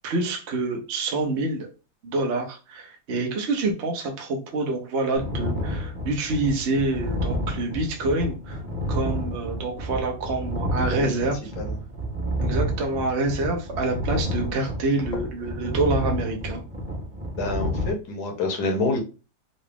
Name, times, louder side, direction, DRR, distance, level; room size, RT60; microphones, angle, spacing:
voice 1, 0.0-1.7 2.0-8.6 8.9-11.4 12.4-16.6, right 2 dB, 55° right, 2 dB, 0.8 m, -27 dB
sound 1, 5.1-17.9, equal, 10° right, 0.8 m, -30 dB
voice 2, 17.4-19.0, left 3 dB, 65° left, 2 dB, 1.4 m, -27 dB
3.9 x 2.3 x 3.4 m, 0.32 s
omnidirectional pair, 2.1 m